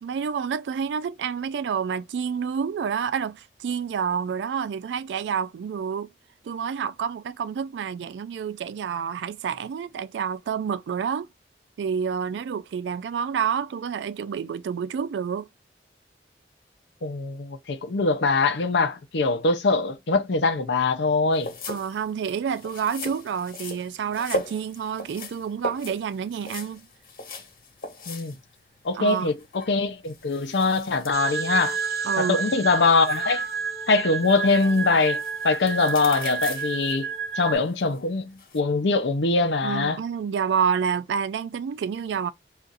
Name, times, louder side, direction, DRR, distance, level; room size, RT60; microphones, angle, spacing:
voice 1, 0.0-6.1 6.4-11.3 11.8-15.5 21.7-26.9 28.9-29.3 32.0-32.4 39.6-42.3, right 7 dB, 85° right, 0.3 m, -28 dB
voice 2, 17.0-21.5 28.1-28.3 28.8-31.8 32.2-33.4 33.9-37.1 37.4-40.0, left 3 dB, 85° left, 0.7 m, -23 dB
sound 1, 21.3-38.6, left 2 dB, 50° left, 1.0 m, -39 dB
sound 2, 31.1-37.6, right 5 dB, 55° right, 0.7 m, -30 dB
2.5 x 2.5 x 3.9 m
head